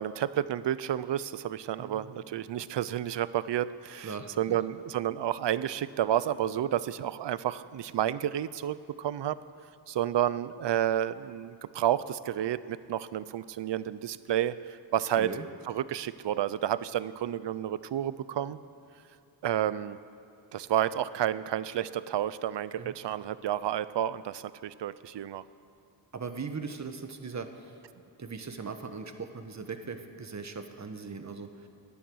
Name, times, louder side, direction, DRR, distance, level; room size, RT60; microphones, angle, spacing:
voice 1, 0.0-9.4 9.9-15.3 15.7-18.6 19.4-20.0 20.5-25.4, right 11 dB, 65° right, 16 dB, 0.6 m, -30 dB
voice 2, 1.8-2.2 4.0-4.6 15.2-15.4 22.8-23.0 26.1-27.7 28.2-31.5, right 5 dB, 35° right, 7 dB, 1.3 m, -39 dB
17.0 x 10.0 x 6.3 m, 2.6 s
cardioid pair, 60°, 47 cm